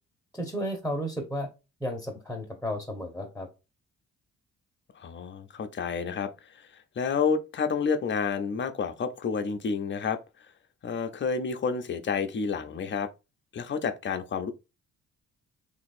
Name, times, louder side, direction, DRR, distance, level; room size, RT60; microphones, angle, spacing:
voice 1, 0.3-1.5 1.8-3.5, equal, 5° left, 1.0 m, -33 dB
voice 2, 5.0-6.7 7.0-10.2 10.8-13.1 13.5-14.5, left 5 dB, 40° left, 0.6 m, -29 dB
2.9 x 2.6 x 4.2 m
cardioid pair, 90°, 30 cm